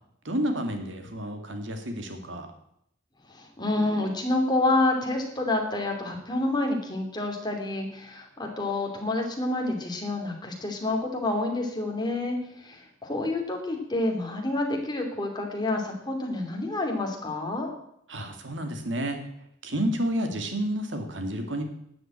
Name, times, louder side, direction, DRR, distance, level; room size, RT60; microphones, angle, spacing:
voice 1, 0.2-2.5 18.1-19.2 19.6-21.6, equal, 70° right, 5 dB, 2.3 m, -30 dB
voice 2, 3.3-17.7, left 2 dB, 25° left, 2 dB, 2.8 m, -28 dB
12.0 x 7.7 x 8.9 m, 0.75 s
head